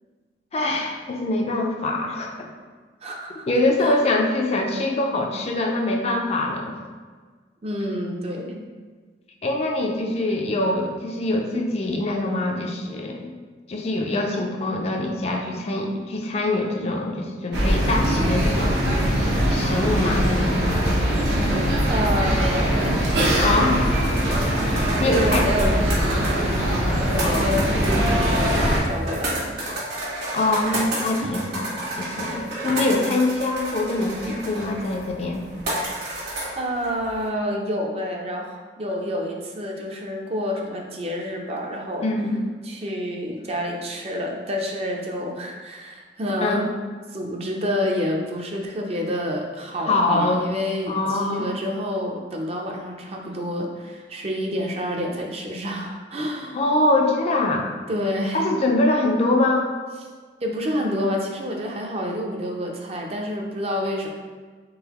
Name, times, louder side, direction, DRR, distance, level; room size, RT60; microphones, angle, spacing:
voice 1, 0.5-2.3 3.5-6.7 9.4-13.3 13.7-18.8 19.5-20.6 23.4-24.0 24.6-25.5 27.2-27.7 30.3-35.4 42.0-42.4 46.4-46.6 49.8-50.4 50.9-51.5 56.5-57.7 58.3-59.7, left 2 dB, 35° left, 1 dB, 0.4 m, -24 dB
voice 2, 3.0-3.5 3.8-4.0 7.6-8.6 21.9-23.1 25.0-26.6 27.1-29.6 36.6-42.1 42.6-46.7 47.1-56.6 57.9-58.4 60.4-64.1, equal, 35° right, 0 dB, 0.5 m, -28 dB
sound 1, 17.5-28.8, equal, 80° right, 0.8 m, -21 dB
sound 2, 24.0-37.3, right 1 dB, 65° right, 1.4 m, -31 dB
3.8 x 3.4 x 2.9 m, 1.5 s
head